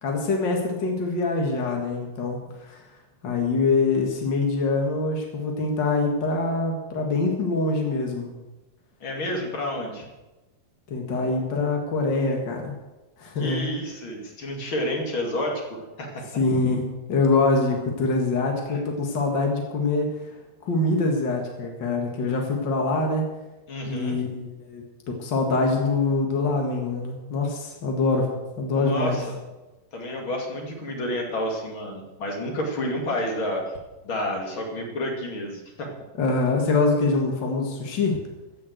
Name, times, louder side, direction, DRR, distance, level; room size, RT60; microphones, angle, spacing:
voice 1, 0.0-2.9 3.2-8.3 10.9-12.7 13.2-13.7 16.3-20.3 20.6-23.3 23.8-29.2 36.2-38.2, left 3 dB, 60° left, 1 dB, 1.2 m, -24 dB
voice 2, 9.0-10.1 13.4-16.2 18.7-18.8 23.7-24.2 28.7-29.2 29.9-33.7 34.0-35.9, left 1 dB, 35° left, 1 dB, 2.4 m, -30 dB
14.5 x 7.1 x 7.8 m, 1.1 s
omnidirectional pair, 4.7 m